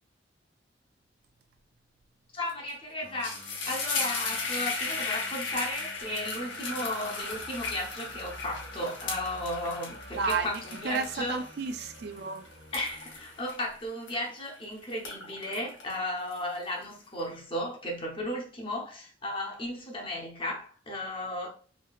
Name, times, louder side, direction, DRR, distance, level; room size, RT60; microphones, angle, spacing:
voice 1, 2.3-3.4 3.6-11.4 12.7-21.5, left 1 dB, 30° left, 0.8 m, -35 dB
sound 1, 2.5-2.7 3.0-14.6 14.9-16.8, left 4 dB, 80° left, 0.9 m, -36 dB
sound 2, 3.0-13.8, right 1 dB, 80° right, 1.1 m, -51 dB
voice 2, 10.2-12.5, right 5 dB, 60° right, 0.4 m, -32 dB
3.2 x 2.7 x 2.3 m
head